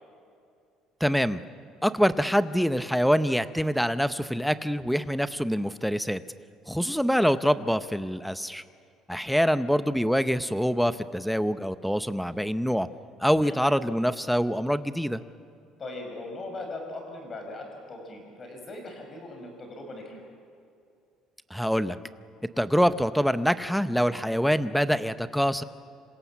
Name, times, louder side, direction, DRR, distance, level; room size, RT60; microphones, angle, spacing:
voice 1, 1.0-1.4 1.8-6.2 6.7-8.6 9.1-12.9 13.2-15.2 21.5-22.0 22.6-25.6, equal, ahead, 12 dB, 0.7 m, -25 dB
voice 2, 15.8-20.2, left 2 dB, 25° left, 3 dB, 5.7 m, -40 dB
26.5 x 26.0 x 7.4 m, 2.4 s
cardioid pair, 165°, 0 cm